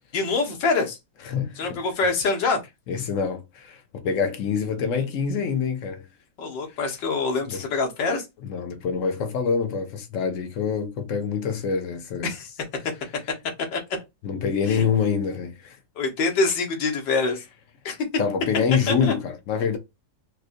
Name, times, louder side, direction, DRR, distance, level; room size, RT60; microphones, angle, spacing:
voice 1, 0.1-1.0 1.6-2.6 6.4-8.3 12.2-12.5 13.7-13.8 14.7-14.9 16.0-17.4 17.9-18.0 18.9-19.2, left 3 dB, 90° left, 1.8 m, -25 dB
voice 2, 1.2-1.8 2.9-6.0 7.5-7.6 8.5-12.3 14.2-15.8 18.2-19.8, left 6 dB, 65° left, 0.8 m, -26 dB
4.2 x 2.4 x 2.5 m
omnidirectional pair, 1.9 m